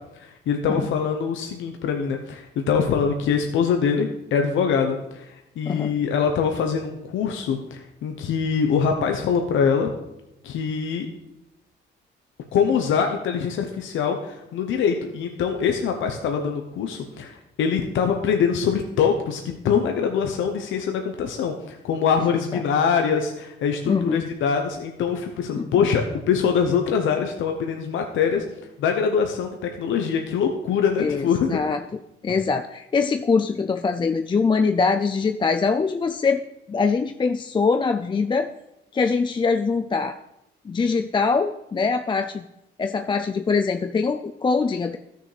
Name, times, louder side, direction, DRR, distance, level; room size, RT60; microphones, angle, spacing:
voice 1, 0.1-9.9 10.4-11.1 12.5-28.4 28.8-31.6, left 6 dB, 75° left, 4 dB, 0.9 m, -23 dB
voice 2, 23.9-24.2 25.6-25.7 31.0-31.8 32.2-36.4 36.7-38.5 38.9-40.2 40.7-42.4 42.8-45.0, left 4 dB, 25° left, 6 dB, 0.4 m, -23 dB
13.5 x 6.5 x 3.3 m, 0.89 s
cardioid pair, 90°, 20 cm